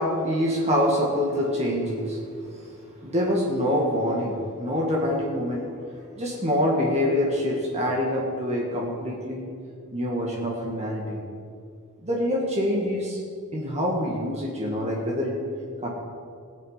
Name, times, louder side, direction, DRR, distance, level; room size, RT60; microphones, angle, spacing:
voice 1, 0.0-5.7 5.9-9.5 9.9-11.2 12.0-13.2 13.5-15.4 15.8-15.9, equal, 30° right, -3 dB, 1.9 m, -26 dB
19.0 x 8.0 x 5.7 m, 2.3 s
head